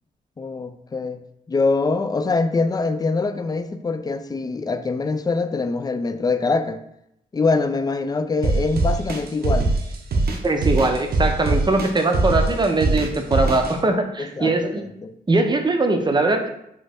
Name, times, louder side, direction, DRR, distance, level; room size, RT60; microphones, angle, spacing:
voice 1, 0.4-1.2 1.5-6.8 7.3-9.7 14.2-14.7 15.0-15.1, left 3 dB, 20° left, 9 dB, 0.4 m, -23 dB
sound 1, 8.4-13.7, right 3 dB, 65° right, 0.6 m, -22 dB
voice 2, 10.4-14.8 15.3-16.5, right 2 dB, 25° right, 5 dB, 0.6 m, -21 dB
3.0 x 2.6 x 3.3 m, 0.78 s
supercardioid pair, 45°, 17 cm